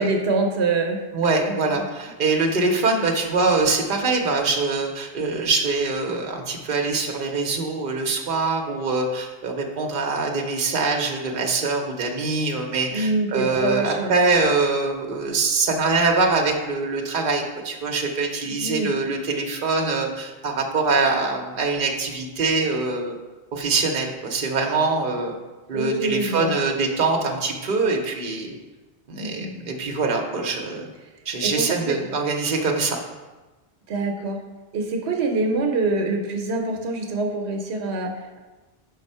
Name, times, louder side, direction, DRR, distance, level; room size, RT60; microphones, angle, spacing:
voice 1, 0.0-1.0 1.5-1.8 12.9-14.1 18.5-18.9 25.7-26.5 29.2-29.5 31.4-32.0 33.9-34.4 34.7-38.4, right 3 dB, 85° right, 3 dB, 1.0 m, -25 dB
voice 2, 1.1-23.1 23.5-25.4 25.7-28.6 29.1-30.9 31.3-33.0, right 3 dB, 55° right, 2 dB, 0.9 m, -23 dB
5.3 x 4.0 x 5.4 m, 1.2 s
omnidirectional pair, 1.1 m